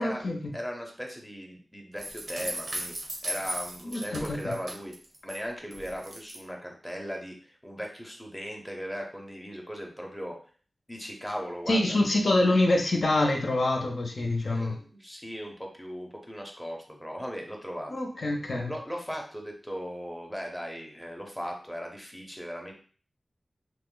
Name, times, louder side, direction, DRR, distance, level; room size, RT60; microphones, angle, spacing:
voice 1, 0.0-0.4 3.8-4.5 11.7-14.8 17.9-18.7, left 2 dB, 65° left, 1 dB, 0.6 m, -26 dB
voice 2, 0.5-2.9 3.2-4.9 5.2-10.4 10.9-12.0 14.5-17.9 18.7-22.7, equal, 5° left, 0 dB, 0.7 m, -38 dB
sound 1, 2.0-5.4 5.7-6.4, right 1 dB, 65° right, 0.7 m, -37 dB
3.0 x 2.1 x 3.7 m, 0.41 s
wide cardioid pair, 105°, 0 cm